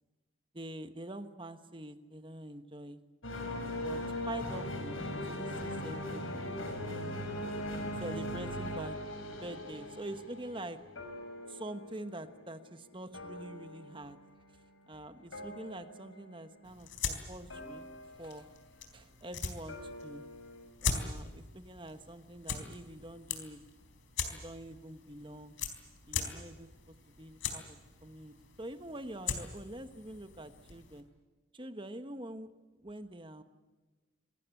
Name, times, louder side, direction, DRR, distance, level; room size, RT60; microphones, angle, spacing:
voice 1, 0.5-3.0 3.8-6.4 6.8-7.2 8.0-9.0 9.4-10.8 11.5-14.2 14.9-17.9 18.2-18.5 18.9-20.2 20.8-23.6 24.3-25.6 26.0-31.0 31.5-32.5 32.8-33.4, right 1 dB, 25° right, 9 dB, 1.3 m, -45 dB
sound 1, 3.2-12.6 12.9-14.3 15.3-16.4 17.5-18.3 19.7-20.6, left 1 dB, 90° left, 5.4 m, -40 dB
sound 2, 16.6-31.0, left 5 dB, 70° left, 4.1 m, -41 dB
27.0 x 19.5 x 8.4 m, 1.3 s
head